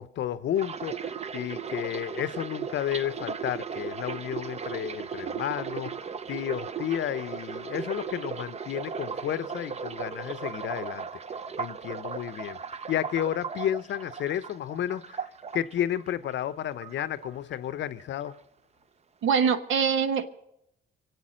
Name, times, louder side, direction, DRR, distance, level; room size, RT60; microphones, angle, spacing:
voice 1, 0.0-11.1 11.6-15.3 15.5-18.4, left 11 dB, 65° left, 0.6 m, -32 dB
sound 1, 0.6-16.5 16.8-17.7 18.0-18.4, right 6 dB, 35° right, 0.6 m, -37 dB
voice 2, 19.2-20.3, right 6 dB, 80° right, 1.0 m, -23 dB
24.0 x 8.2 x 6.2 m
cardioid pair, 90°, 20 cm